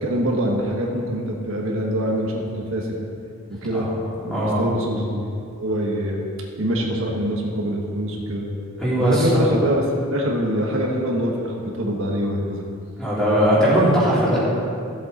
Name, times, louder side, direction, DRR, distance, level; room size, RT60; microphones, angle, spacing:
voice 1, 0.0-3.0 3.6-3.9 4.2-5.3 5.6-6.3 6.6-8.5 9.0-12.6, equal, 70° right, -1 dB, 1.3 m, -24 dB
voice 2, 4.3-4.7 8.8-9.5 13.0-14.4, equal, 5° left, -9 dB, 2.9 m, -19 dB
14.0 x 7.8 x 4.2 m, 2.4 s
head